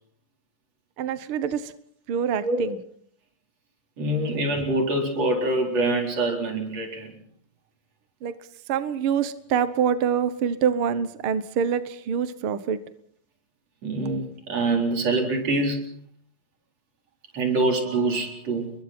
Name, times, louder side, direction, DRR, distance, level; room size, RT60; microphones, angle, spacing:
voice 1, 1.0-1.7 2.1-2.8 8.2-8.4 8.7-12.8, right 7 dB, 65° right, 12 dB, 1.3 m, -25 dB
voice 2, 4.0-7.1 13.8-15.9 17.3-18.7, right 2 dB, 50° right, 2 dB, 5.3 m, -25 dB
30.0 x 22.5 x 4.4 m, 0.63 s
omnidirectional pair, 3.8 m